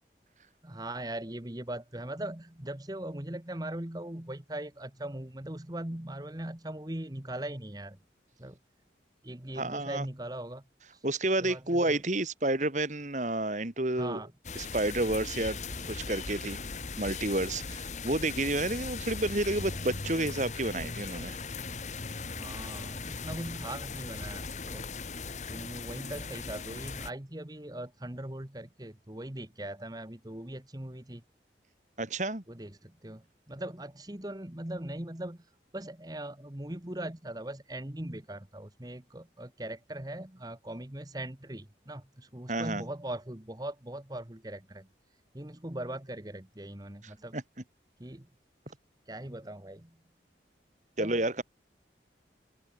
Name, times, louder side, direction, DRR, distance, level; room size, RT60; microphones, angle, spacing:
voice 1, 0.6-8.0 8.4-8.6 9.2-10.6 10.9-11.0 11.4-12.0 14.0-14.3 22.2-24.9 25.5-31.2 32.5-44.9 45.3-47.4 48.0-48.3 49.1-49.9 51.0-51.4, right 1 dB, 20° right, 1.4 m, -40 dB
voice 2, 9.6-10.1 11.0-14.2 14.6-15.6 15.9-16.6 17.0-21.4 32.0-32.4 42.5-42.8 47.3-47.4 51.0-51.4, right 2 dB, 40° right, 2.4 m, -30 dB
sound 1, 14.4-27.1, left 4 dB, 40° left, 1.4 m, -39 dB
head